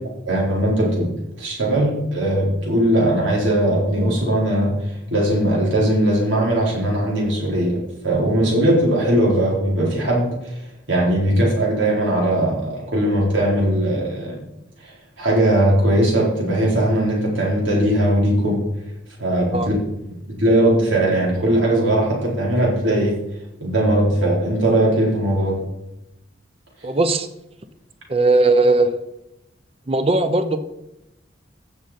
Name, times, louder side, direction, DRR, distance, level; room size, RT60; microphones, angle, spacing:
voice 1, 0.3-1.1 1.4-4.7 5.1-10.6 10.9-14.4 14.8-14.9 15.2-18.6 19.2-19.7 20.3-23.1 23.6-25.6, right 1 dB, 85° right, -4 dB, 4.4 m, -19 dB
voice 2, 26.8-27.3 28.1-28.9 29.9-30.6, right 2 dB, 30° right, 10 dB, 0.7 m, -17 dB
15.5 x 6.4 x 4.3 m, 0.90 s
head